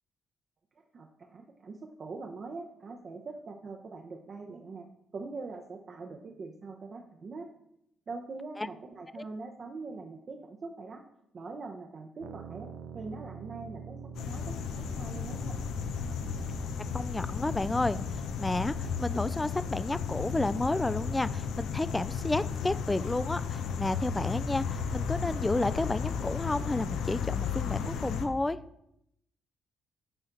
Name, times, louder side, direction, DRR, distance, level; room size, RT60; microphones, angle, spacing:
voice 1, 0.9-7.5 8.1-11.0 11.3-15.6, right 3 dB, 45° right, 3 dB, 0.7 m, -43 dB
sound 1, 12.2-23.8, right 6 dB, 90° right, 0.6 m, -48 dB
sound 2, 14.1-28.3, left 6 dB, 85° left, 0.6 m, -34 dB
voice 2, 16.9-18.0 18.4-28.6, left 2 dB, 15° left, 15 dB, 0.3 m, -31 dB
8.9 x 4.4 x 3.9 m, 0.78 s
cardioid pair, 90°, 0 cm